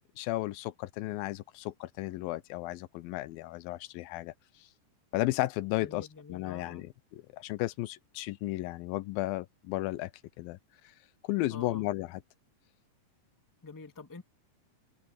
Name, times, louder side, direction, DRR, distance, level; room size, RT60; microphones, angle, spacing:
voice 1, 0.2-4.3 5.1-10.1 10.4-10.6 11.2-12.2, left 17 dB, 85° left, 2.5 m, -34 dB
voice 2, 5.8-6.8 11.5-11.8 13.6-14.2, left 3 dB, 10° left, 1.2 m, -47 dB
open air
omnidirectional pair, 4.1 m